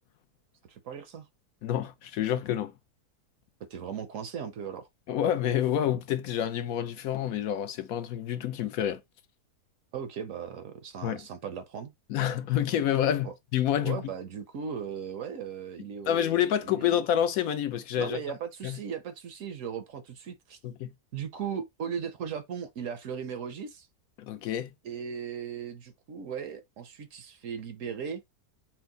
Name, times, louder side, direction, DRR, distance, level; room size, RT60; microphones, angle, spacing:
voice 1, 0.7-1.3 3.7-4.9 9.9-11.9 13.2-13.3 13.8-16.9 18.0-20.6 21.1-23.9 24.8-28.2, right 7 dB, 65° right, 0.9 m, -37 dB
voice 2, 1.6-2.7 5.1-9.0 11.0-11.2 12.1-14.0 16.1-18.2 18.6-18.8 20.6-20.9 24.2-24.7, left 10 dB, 75° left, 1.0 m, -28 dB
4.5 x 2.1 x 3.8 m
omnidirectional pair, 1.6 m